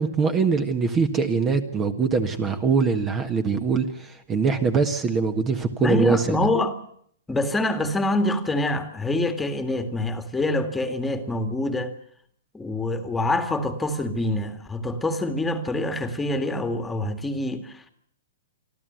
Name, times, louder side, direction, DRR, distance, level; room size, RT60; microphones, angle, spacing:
voice 1, 0.0-6.4, right 5 dB, 20° right, 1.6 m, -23 dB
voice 2, 5.8-6.7 7.3-11.9 12.5-17.9, left 1 dB, 10° left, 2.0 m, -25 dB
27.0 x 13.0 x 9.3 m
hypercardioid pair, 135°, 0 cm